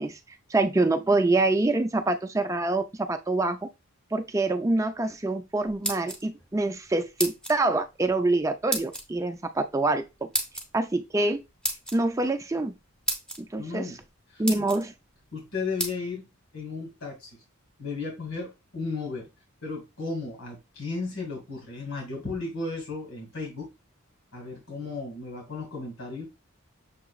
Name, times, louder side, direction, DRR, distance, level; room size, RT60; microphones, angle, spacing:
voice 1, 0.0-3.7 4.1-10.3 10.7-11.4 11.9-12.7 13.4-13.9 14.4-14.9, right 2 dB, 15° right, 0.4 m, -26 dB
sound 1, 5.6-6.5 7.2-7.6 8.7-9.0 10.3-10.7 11.6-12.0 12.7-12.8 13.1-13.4 14.0-14.1 14.4-14.8 15.8-15.9, right 1 dB, 5° left, 0.9 m, -30 dB
voice 2, 13.6-14.0 14.3-14.4 15.3-16.3 16.5-17.4 17.8-19.3 19.6-23.7 24.3-26.3, left 3 dB, 80° left, 2.2 m, -34 dB
6.6 x 3.0 x 2.3 m
head